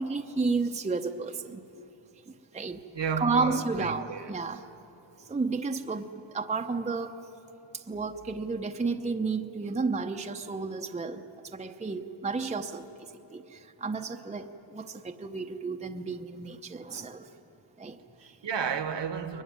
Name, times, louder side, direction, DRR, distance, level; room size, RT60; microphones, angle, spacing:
voice 1, 0.0-1.6 2.3-2.8 3.2-4.6 5.3-7.2 7.7-11.2 11.5-17.3 17.8-18.4, right 4 dB, 15° right, 0.8 m, -32 dB
voice 2, 2.9-4.4 18.4-19.4, right 6 dB, 60° right, 1.3 m, -32 dB
23.0 x 21.0 x 9.6 m
wide cardioid pair, 135°, 49 cm